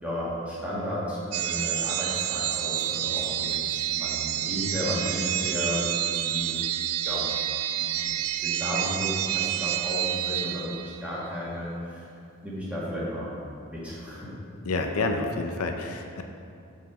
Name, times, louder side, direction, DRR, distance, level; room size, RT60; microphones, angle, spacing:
voice 1, 0.0-5.8 6.1-6.6 7.0-7.3 7.7-12.1 12.4-13.3 13.7-14.3, left 1 dB, 5° right, -8 dB, 1.7 m, -33 dB
sound 1, 1.3-11.1, right 12 dB, 75° right, 0.4 m, -29 dB
voice 2, 14.6-16.2, left 3 dB, 80° left, 4 dB, 0.6 m, -28 dB
5.7 x 5.1 x 6.6 m, 2.6 s
head